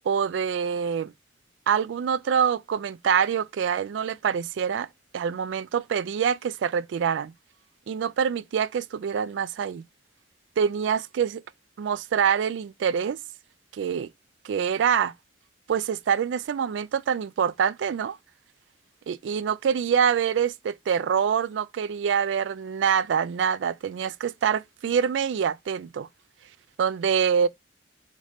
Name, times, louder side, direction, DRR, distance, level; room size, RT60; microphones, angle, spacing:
voice 1, 0.1-1.1 1.7-4.9 5.1-7.3 7.9-9.8 10.6-11.4 11.8-13.2 13.7-14.1 14.4-15.1 15.7-18.2 19.1-26.1 26.8-27.5, right 7 dB, 90° right, 0.3 m, -25 dB
4.1 x 3.7 x 3.3 m
head